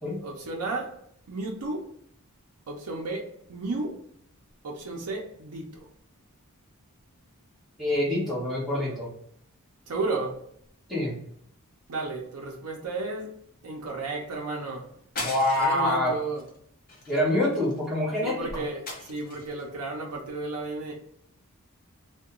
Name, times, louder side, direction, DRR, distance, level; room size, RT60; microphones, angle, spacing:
voice 1, 0.2-1.0 1.3-1.9 2.7-4.0 4.6-5.8 9.9-10.5 11.9-14.9 15.5-16.4 18.2-20.9, right 3 dB, 80° right, 0.5 m, -33 dB
voice 2, 7.8-9.1 10.9-11.1 15.2-16.1 17.1-18.6, left 1 dB, ahead, 1.3 m, -26 dB
sound 1, 15.2-15.9 16.4-16.6 16.9-17.9 18.9-19.6, left 2 dB, 40° left, 0.7 m, -38 dB
2.8 x 2.2 x 3.7 m
head